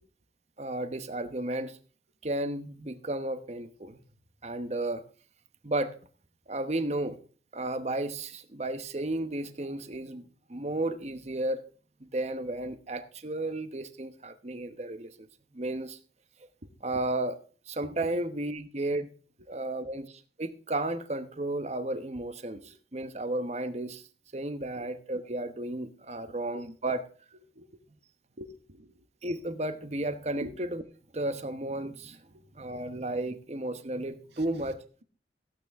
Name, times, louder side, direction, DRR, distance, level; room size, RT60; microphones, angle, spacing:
voice 1, 0.6-1.8 2.2-4.0 4.4-5.0 5.6-5.9 6.5-7.2 7.5-11.6 12.0-15.1 15.5-16.0 16.8-17.4 17.7-19.1 19.5-24.0 24.3-27.1 29.2-30.8 31.1-32.2 32.5-34.8, right 1 dB, 40° right, 1.0 m, -33 dB
voice 2, 16.6-17.0 18.0-18.1 22.6-22.8 24.7-25.0 27.6-27.8 28.4-28.9 30.4-30.6 32.3-32.4, equal, 80° right, 1.8 m, -45 dB
15.5 x 8.9 x 3.6 m
head